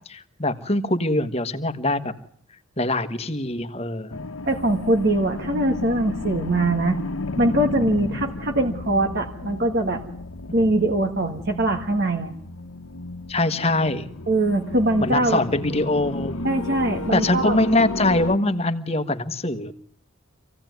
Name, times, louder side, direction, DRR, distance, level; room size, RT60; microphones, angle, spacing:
voice 1, 0.1-2.1 2.8-4.2 13.3-14.1 15.0-16.4 17.1-19.7, left 2 dB, 30° left, 10 dB, 1.4 m, -23 dB
sound 1, 4.1-18.4, left 2 dB, 75° left, 1.1 m, -33 dB
voice 2, 4.5-7.0 7.4-10.0 10.5-12.4 14.3-15.4 16.4-17.6, right 1 dB, 50° right, 3 dB, 1.7 m, -22 dB
26.5 x 17.0 x 9.4 m, 0.63 s
head